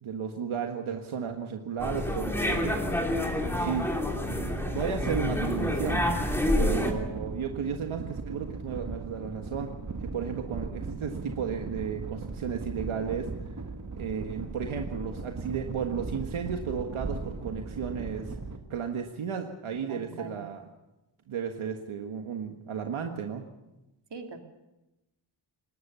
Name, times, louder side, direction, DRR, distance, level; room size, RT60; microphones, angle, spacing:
voice 1, 0.0-2.8 3.6-3.9 4.7-6.1 6.6-9.7 10.0-13.3 13.9-18.4 18.7-20.7 21.3-23.4, right 7 dB, 85° right, 4 dB, 1.7 m, -34 dB
sound 1, 1.8-6.9, left 1 dB, 5° left, 3.0 m, -28 dB
sound 2, 4.3-18.6, right 3 dB, 40° right, 1.9 m, -38 dB
voice 2, 6.6-6.9 19.9-20.4 24.1-24.4, right 4 dB, 60° right, 3 dB, 2.8 m, -41 dB
21.0 x 19.0 x 6.9 m, 0.98 s
wide cardioid pair, 125°, 48 cm